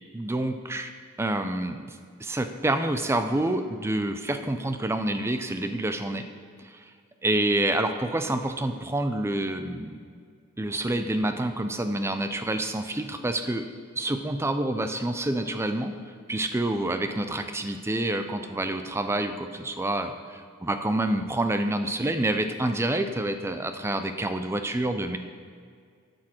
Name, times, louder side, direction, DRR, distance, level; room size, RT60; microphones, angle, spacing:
voice 1, 0.1-0.9 1.2-1.9 2.2-6.3 7.2-10.0 10.6-13.6 14.0-15.9 16.3-25.2, right 1 dB, 10° right, 8 dB, 0.4 m, -27 dB
12.0 x 6.4 x 4.4 m, 2.1 s
head